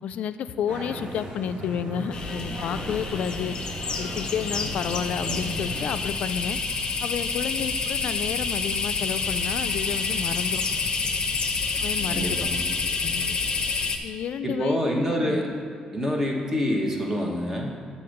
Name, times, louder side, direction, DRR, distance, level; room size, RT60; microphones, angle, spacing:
voice 1, 0.0-3.6 4.0-6.6 7.0-10.6 11.7-12.5 13.0-13.3 14.0-14.8 15.2-15.4, left 8 dB, 70° left, 12 dB, 0.3 m, -31 dB
sound 1, 0.7-6.0, right 1 dB, 80° right, 1.3 m, -36 dB
sound 2, 2.1-14.0, left 4 dB, 40° left, 0.7 m, -28 dB
voice 2, 12.1-12.6 14.4-15.5 15.9-17.8, equal, 15° right, 0 dB, 1.1 m, -26 dB
7.5 x 4.2 x 6.5 m, 2.3 s
cardioid pair, 135°, 2 cm